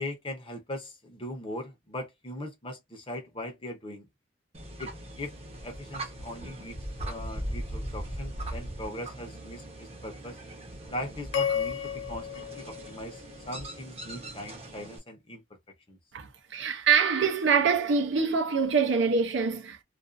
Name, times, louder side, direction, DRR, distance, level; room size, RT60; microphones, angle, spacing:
voice 1, 0.0-4.1 4.8-5.3 5.6-10.4 10.9-15.4 15.9-16.0, left 1 dB, 25° left, 0.7 m, -40 dB
sound 1, 4.5-15.0, right 1 dB, 30° right, 0.8 m, -40 dB
sound 2, 11.3-13.7, left 8 dB, 60° left, 0.3 m, -33 dB
voice 2, 16.1-19.8, right 5 dB, 65° right, 0.5 m, -25 dB
2.4 x 2.3 x 2.5 m
head